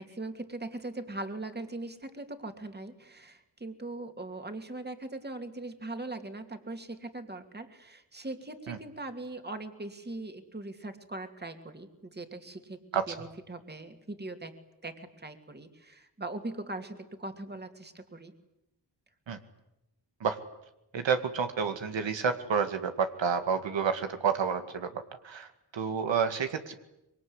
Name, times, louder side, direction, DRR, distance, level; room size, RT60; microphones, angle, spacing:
voice 1, 0.0-12.8 13.1-18.3, right 2 dB, 20° right, 6 dB, 2.8 m, -40 dB
voice 2, 20.9-26.7, right 6 dB, 90° right, 7 dB, 2.3 m, -30 dB
25.5 x 23.5 x 9.8 m, 0.87 s
wide cardioid pair, 125°, 44 cm